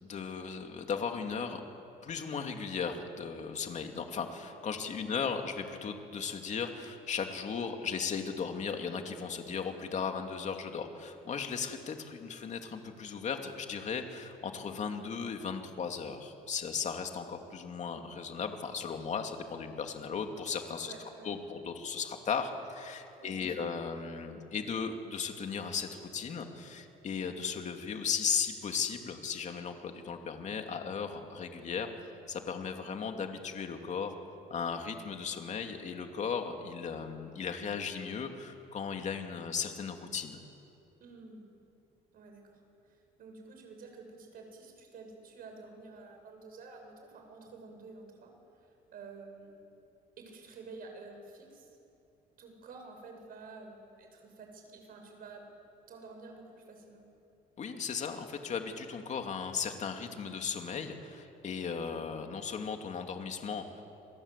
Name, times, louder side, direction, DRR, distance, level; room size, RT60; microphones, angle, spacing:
voice 1, 0.1-1.6 2.0-20.9 21.2-31.9 32.3-34.1 34.5-40.4 57.6-63.8, left 6 dB, 45° left, 4 dB, 2.7 m, -36 dB
voice 2, 20.8-21.3 23.2-23.6 41.0-41.4 42.1-48.3 48.9-49.5 50.2-51.7 52.4-55.4 55.9-57.1, right 3 dB, 60° right, 3 dB, 7.0 m, -50 dB
29.0 x 22.0 x 8.4 m, 2.7 s
cardioid pair, 110°, 17 cm